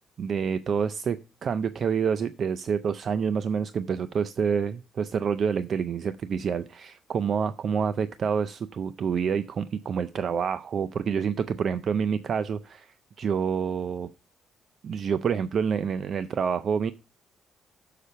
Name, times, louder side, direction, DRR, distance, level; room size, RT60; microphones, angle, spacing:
voice 1, 0.2-14.1 14.8-16.9, right 6 dB, 55° right, 14 dB, 0.5 m, -28 dB
6.7 x 5.5 x 6.7 m, 0.31 s
cardioid pair, 90°, 0 cm